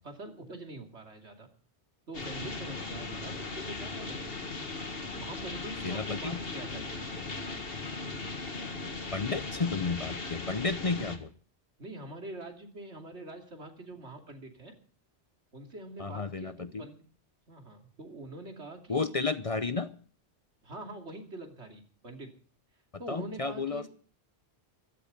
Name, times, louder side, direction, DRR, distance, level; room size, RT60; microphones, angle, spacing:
voice 1, 0.0-1.5 2.1-4.5 5.1-7.4 11.8-14.7 15.5-17.0 17.5-19.1 20.6-22.3 23.0-23.8, right 2 dB, 90° right, 4 dB, 3.1 m, -44 dB
sound 1, 2.1-11.2, left 3 dB, 60° left, 2.0 m, -38 dB
voice 2, 5.8-6.4 9.1-11.3 16.0-16.8 18.9-19.9 23.1-23.9, left 4 dB, 35° left, 13 dB, 0.7 m, -32 dB
15.5 x 13.0 x 5.2 m, 0.42 s
omnidirectional pair, 1.1 m